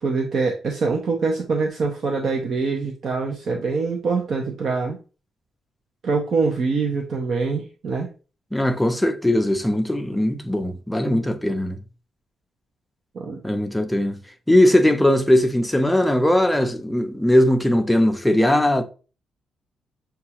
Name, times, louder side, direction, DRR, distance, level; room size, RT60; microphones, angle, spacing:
voice 1, 0.0-5.0 6.0-8.1 13.1-13.4, right 4 dB, 50° right, 0.6 m, -24 dB
voice 2, 8.5-11.8 13.4-14.2 14.5-18.8, left 1 dB, 5° left, 0.5 m, -19 dB
6.5 x 2.3 x 2.8 m
wide cardioid pair, 155°, 0 cm